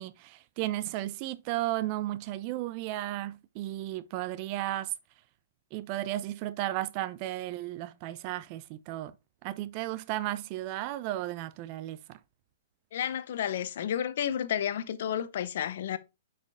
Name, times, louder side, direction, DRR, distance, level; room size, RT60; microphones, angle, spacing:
voice 1, 0.0-4.9 5.7-9.1 9.4-12.2, right 15 dB, 40° right, 0.5 m, -34 dB
voice 2, 12.9-16.0, left 9 dB, 60° left, 0.8 m, -31 dB
6.5 x 5.0 x 3.5 m
hypercardioid pair, 125°, 0 cm